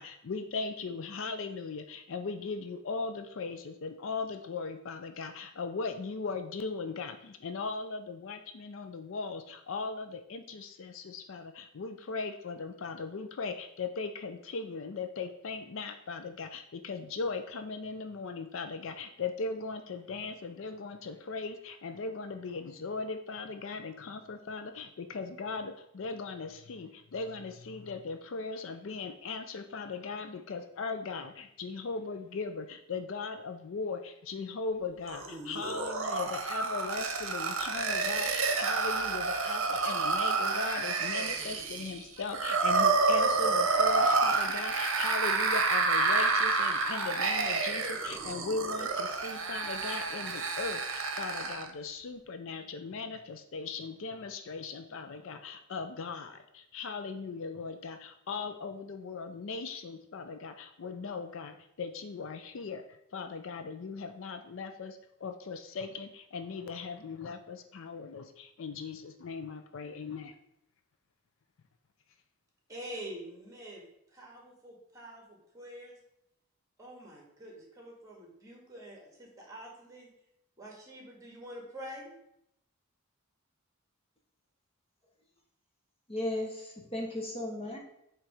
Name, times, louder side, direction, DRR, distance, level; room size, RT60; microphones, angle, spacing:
voice 1, 0.0-62.8 63.1-70.3, left 4 dB, 60° left, 8 dB, 0.4 m, -38 dB
sound 1, 35.1-51.7, right 4 dB, 60° right, 0.8 m, -29 dB
voice 2, 72.7-73.8 74.1-75.9 76.8-80.1 80.6-82.1, equal, 15° right, -1 dB, 1.7 m, -46 dB
voice 3, 86.1-87.8, left 1 dB, 25° left, 0 dB, 0.9 m, -35 dB
7.5 x 3.2 x 4.9 m, 0.79 s
head